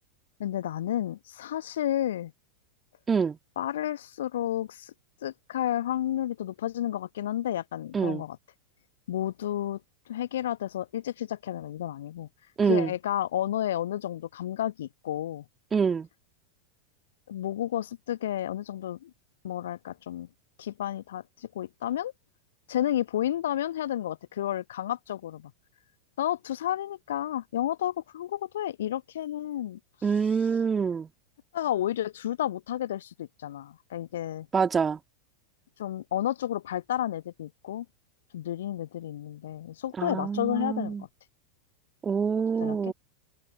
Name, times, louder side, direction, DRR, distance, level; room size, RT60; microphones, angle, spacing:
voice 1, 0.4-2.3 3.6-4.9 5.2-8.4 9.1-9.8 10.1-12.3 12.7-15.4 17.3-19.1 19.4-20.3 20.6-22.1 22.7-25.5 26.2-29.8 31.5-34.5 35.8-37.8 38.3-41.1 42.3-42.9, left 12 dB, 60° left, 1.1 m, -31 dB
voice 2, 3.1-3.4 7.9-8.2 12.6-12.9 15.7-16.1 30.0-31.1 34.5-35.0 40.0-41.0 42.0-42.9, right 6 dB, 20° right, 2.3 m, -26 dB
figure-of-eight pair, 90°, 0 cm